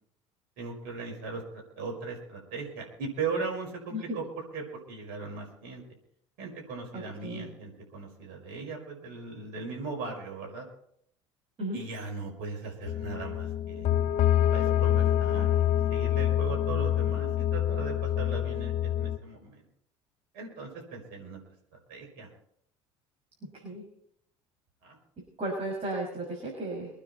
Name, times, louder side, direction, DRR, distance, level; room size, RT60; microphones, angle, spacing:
voice 1, 0.6-5.8 6.4-10.7 11.7-13.9 14.5-19.6 20.3-21.4 21.9-22.3 24.8-25.0, right 4 dB, 65° right, 1 dB, 5.4 m, -38 dB
sound 1, 12.8-19.2, left 11 dB, 55° left, 1.0 m, -26 dB
voice 2, 25.4-26.9, right 1 dB, 40° right, -2 dB, 6.5 m, -34 dB
24.5 x 9.9 x 4.3 m, 0.68 s
hypercardioid pair, 70°, 15 cm